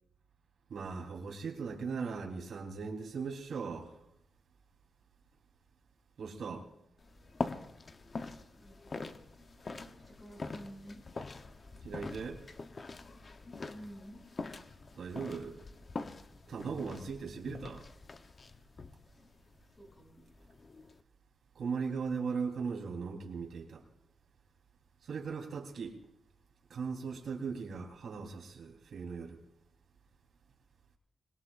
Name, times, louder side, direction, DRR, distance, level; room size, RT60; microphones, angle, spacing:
voice 1, 0.7-4.0 6.2-6.7 11.8-12.4 15.0-15.6 16.5-17.9 21.5-23.8 25.0-26.0 26.7-29.4, right 5 dB, 75° right, 3.7 m, -38 dB
sound 1, 7.0-21.0, left 3 dB, 40° left, 0.9 m, -44 dB
voice 2, 8.6-9.0 9.4-11.0 13.7-14.2 19.8-20.2, equal, 20° left, 6.4 m, -51 dB
26.0 x 21.5 x 2.5 m
wide cardioid pair, 145°, 0 cm